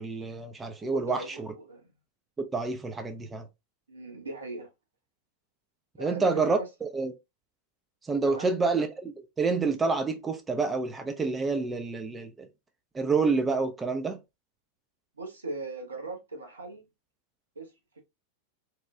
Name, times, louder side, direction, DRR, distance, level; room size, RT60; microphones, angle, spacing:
voice 1, 0.0-1.5 2.4-3.5 6.0-7.1 8.1-12.5 12.9-14.2, right 4 dB, 15° right, 0.3 m, -28 dB
voice 2, 0.8-1.8 3.9-4.7 6.0-6.7 8.2-8.5 15.2-16.9 17.6-18.0, right 2 dB, 75° right, 0.7 m, -39 dB
2.9 x 2.1 x 2.3 m
figure-of-eight pair, 90°, 0 cm